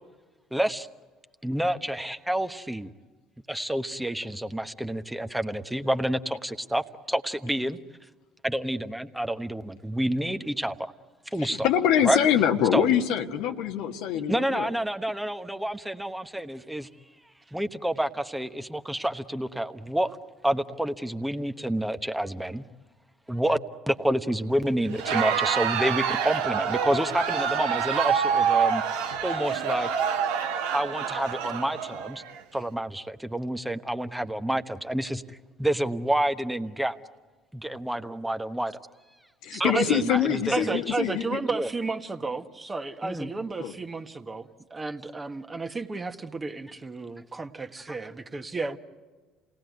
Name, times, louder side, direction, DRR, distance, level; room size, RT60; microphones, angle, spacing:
voice 1, 0.5-0.9 1.4-2.9 3.5-7.8 8.4-10.9 11.3-11.7 12.0-12.2 12.7-12.8 14.3-16.9 17.5-20.2 20.4-22.6 23.3-23.6 23.9-28.8 29.2-29.9 30.7-32.2 32.5-37.0 37.5-38.8 39.6-40.2 40.5-40.8 41.5-41.7 43.0-43.3 47.9-48.0, right 1 dB, 5° right, 8 dB, 1.2 m, -28 dB
voice 2, 11.3-14.7 39.4-41.4 43.6-43.7, left 9 dB, 70° left, 6 dB, 1.4 m, -24 dB
Crowd, 24.9-32.4, right 7 dB, 80° right, 1.4 m, -27 dB
voice 3, 39.5-40.0 40.5-48.8, right 3 dB, 25° right, 6 dB, 1.6 m, -32 dB
28.0 x 18.5 x 9.5 m, 1.4 s
hypercardioid pair, 70°, 0 cm